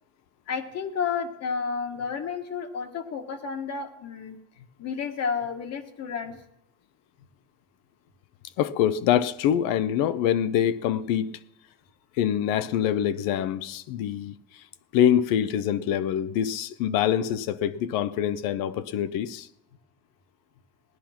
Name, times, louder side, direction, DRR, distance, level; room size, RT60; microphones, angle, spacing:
voice 1, 0.5-4.4 4.8-6.4, left 6 dB, 50° left, 1.7 m, -31 dB
voice 2, 8.6-11.3 12.2-14.3 14.9-19.5, left 10 dB, 85° left, 0.9 m, -25 dB
17.0 x 10.5 x 5.9 m
cardioid pair, 120°, 33 cm